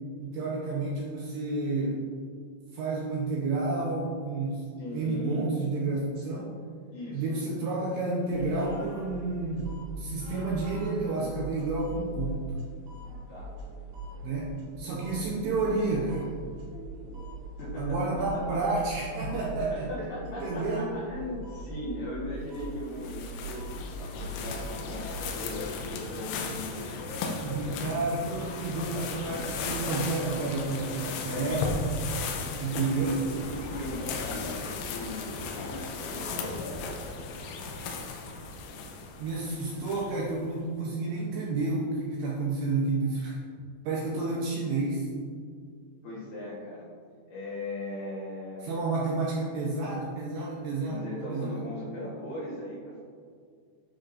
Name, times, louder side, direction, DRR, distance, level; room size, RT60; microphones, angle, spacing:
voice 1, 0.2-2.0 2.7-4.6 4.9-6.5 7.1-12.4 14.2-16.3 17.8-20.1 20.4-21.0 27.4-31.8 32.6-33.2 39.2-43.4 43.8-45.1 48.6-51.0 51.3-51.6, right 3 dB, 80° right, -4 dB, 2.6 m, -30 dB
voice 2, 4.8-5.5 6.9-7.2 13.3-13.5 17.6-18.4 19.7-23.6 24.1-26.9 27.7-28.1 31.6-31.8 32.7-35.3 36.0-36.6 46.0-46.9 47.3-48.8 50.9-53.0, left 1 dB, 65° left, -7 dB, 2.6 m, -39 dB
sound 1, 8.3-25.3, right 1 dB, 60° right, 3.7 m, -41 dB
sound 2, 22.6-40.3, left 4 dB, 85° left, 3.2 m, -36 dB
10.0 x 6.4 x 2.5 m, 2.1 s
omnidirectional pair, 5.8 m